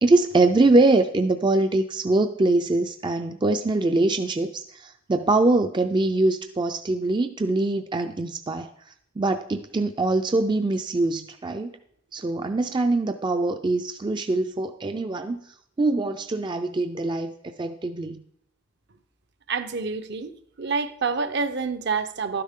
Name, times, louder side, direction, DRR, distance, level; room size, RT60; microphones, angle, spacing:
voice 1, 0.0-8.7 9.2-11.7 12.1-15.4 15.8-17.3 17.6-18.2, right 2 dB, 25° right, 0.4 m, -23 dB
voice 2, 19.5-20.3 20.6-22.4, right 4 dB, 60° right, 0.7 m, -27 dB
12.0 x 10.0 x 3.7 m
head